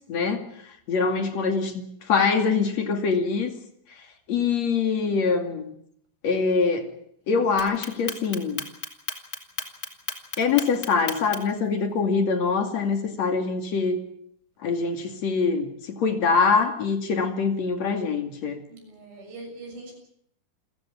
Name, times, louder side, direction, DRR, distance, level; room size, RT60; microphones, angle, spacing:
voice 1, 0.1-0.4 0.9-3.5 4.3-5.7 6.2-6.9 7.3-8.6 10.4-14.0 14.6-18.6, left 5 dB, 50° left, 6 dB, 3.4 m, -24 dB
Clock, 7.6-11.6, left 3 dB, 25° left, 2.6 m, -33 dB
voice 2, 18.7-19.9, right 2 dB, 75° right, 4 dB, 8.8 m, -42 dB
28.5 x 15.5 x 8.6 m, 0.71 s
omnidirectional pair, 4.2 m